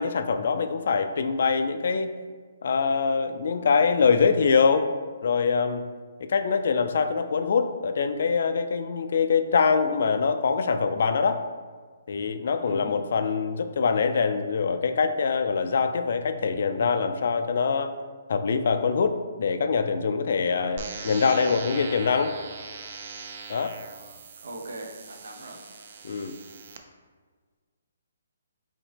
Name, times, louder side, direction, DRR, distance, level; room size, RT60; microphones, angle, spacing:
voice 1, 0.0-2.1 2.6-4.9 5.2-5.8 6.2-11.4 12.1-17.9 18.3-22.3 23.5-23.8 26.0-26.3, left 5 dB, 55° left, 8 dB, 0.3 m, -24 dB
voice 2, 12.6-13.1 24.4-25.6, right 1 dB, 80° right, 2 dB, 0.8 m, -39 dB
sound 1, 20.8-26.8, right 5 dB, 40° right, 0.4 m, -40 dB
5.1 x 2.8 x 3.3 m, 1.5 s
hypercardioid pair, 165°, 0 cm